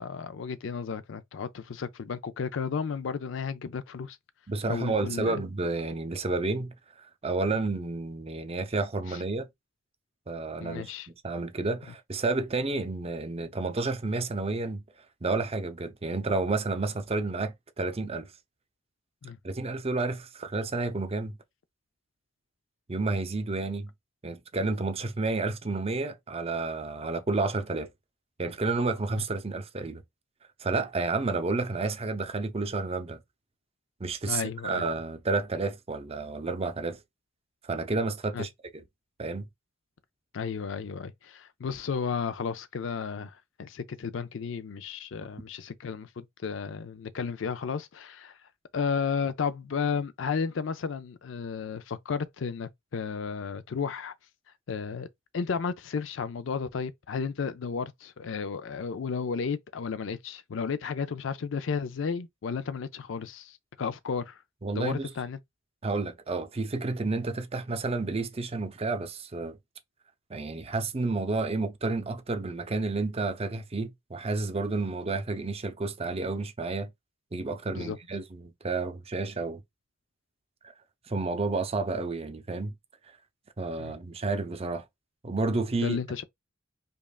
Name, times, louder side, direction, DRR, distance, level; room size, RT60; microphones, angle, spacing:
voice 1, 0.0-4.2 4.7-5.4 10.6-11.1 19.2-19.4 29.2-29.3 34.3-34.8 38.3-38.5 40.3-43.3 43.6-48.4 48.7-54.1 54.7-55.1 55.3-64.4 64.8-65.4 77.8-78.0 83.8-83.9 85.8-86.2, left 6 dB, 70° left, 0.4 m, -33 dB
voice 2, 4.5-9.5 10.3-10.9 11.2-14.8 15.2-18.3 19.4-21.4 22.9-23.9 24.2-27.9 28.4-30.0 30.6-33.2 34.0-37.0 37.6-38.5 39.2-39.5 64.6-65.1 65.8-69.6 70.3-76.9 77.3-79.6 80.6-80.7 81.1-82.7 83.6-84.8 85.2-86.0, right 3 dB, 30° right, 0.6 m, -30 dB
5.2 x 2.4 x 2.3 m
head